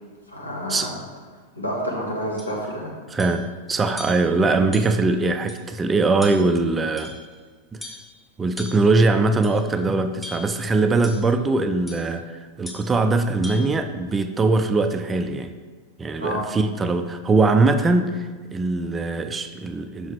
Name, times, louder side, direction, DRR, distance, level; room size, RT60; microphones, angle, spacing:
voice 1, 0.3-0.9 1.6-2.9 16.2-16.4, equal, 80° left, -3 dB, 1.3 m, -29 dB
sound 1, 2.4-2.5 3.2-3.5 4.0-4.3 4.7-5.1 5.5-5.6 6.2-6.6 7.0-7.4 7.8-8.1 8.6-8.9 9.4-9.7 10.2-10.6 11.0-11.3 11.9-12.1 12.7-12.9 13.4-13.7, left 1 dB, 5° left, 0.7 m, -39 dB
voice 2, 3.1-7.1 7.7-7.8 8.4-15.5 16.0-20.1, right 3 dB, 15° right, 8 dB, 0.3 m, -21 dB
5.5 x 5.2 x 3.3 m, 1.4 s
figure-of-eight pair, 90°, 0 cm